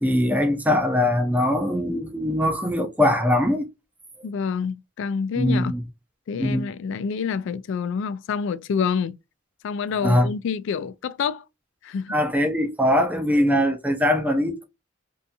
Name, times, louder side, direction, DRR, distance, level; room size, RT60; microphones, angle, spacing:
voice 1, 0.0-3.7 5.4-5.8 6.4-6.7 10.0-10.3 12.1-14.6, left 1 dB, 10° right, 0.5 m, -21 dB
voice 2, 4.2-5.7 6.3-9.2 9.6-11.4 11.8-12.2, left 6 dB, 65° left, 0.3 m, -27 dB
2.7 x 2.6 x 2.3 m
head